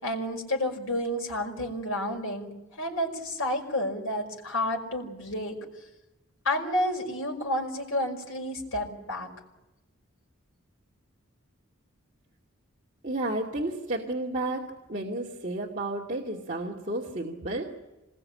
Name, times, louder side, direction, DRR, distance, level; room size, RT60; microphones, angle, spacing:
voice 1, 0.0-2.5 2.8-5.6 6.4-9.3, left 1 dB, 80° left, 1 dB, 5.6 m, -30 dB
voice 2, 13.0-14.6 14.9-17.7, right 2 dB, 40° right, -3 dB, 2.5 m, -32 dB
26.5 x 21.0 x 8.8 m, 0.99 s
head